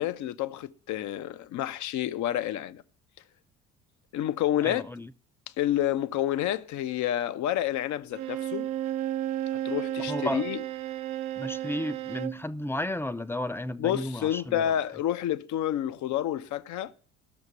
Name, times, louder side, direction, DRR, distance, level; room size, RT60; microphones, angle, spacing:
voice 1, 0.0-2.8 4.1-4.8 5.6-8.7 9.5-10.6 13.8-16.9, left 11 dB, 50° left, 0.8 m, -29 dB
voice 2, 4.6-5.1 10.0-10.4 11.4-14.7, left 1 dB, 5° left, 0.6 m, -33 dB
Bowed string instrument, 8.1-12.4, right 13 dB, 55° right, 0.7 m, -33 dB
12.0 x 6.5 x 8.2 m
figure-of-eight pair, 55°, 39 cm